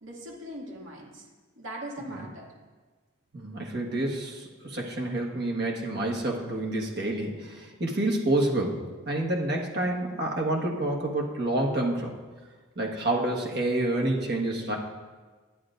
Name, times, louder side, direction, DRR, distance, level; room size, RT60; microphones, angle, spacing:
voice 1, 0.0-1.3 1.6-2.5, right 1 dB, 75° right, -2 dB, 2.2 m, -40 dB
voice 2, 3.3-12.1 12.8-14.8, right 1 dB, 50° right, 0 dB, 1.4 m, -28 dB
11.5 x 10.0 x 2.6 m, 1.4 s
head